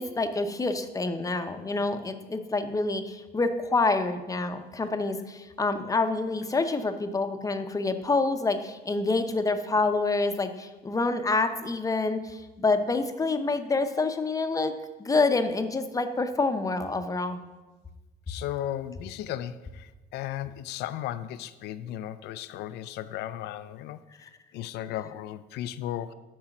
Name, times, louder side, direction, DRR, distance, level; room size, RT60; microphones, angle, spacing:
voice 1, 0.0-14.7 15.0-17.4, left 3 dB, 20° left, 8 dB, 0.7 m, -27 dB
voice 2, 18.3-26.1, left 12 dB, 75° left, 14 dB, 0.4 m, -36 dB
8.7 x 5.5 x 5.9 m, 1.2 s
cardioid pair, 110°, 17 cm